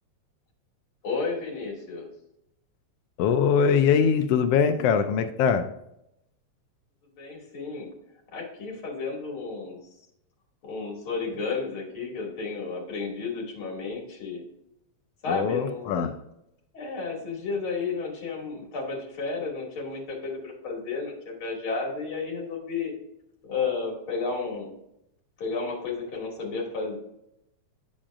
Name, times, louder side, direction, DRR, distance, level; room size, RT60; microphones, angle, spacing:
voice 1, 1.0-2.1 7.2-7.9 8.3-9.8 10.6-14.4 15.2-16.1 16.7-22.9 23.4-24.7 25.4-27.0, left 4 dB, 45° left, -2 dB, 3.0 m, -32 dB
voice 2, 3.2-5.7 15.3-16.1, left 7 dB, 85° left, 8 dB, 1.3 m, -22 dB
8.7 x 7.5 x 2.5 m, 0.81 s
omnidirectional pair, 3.3 m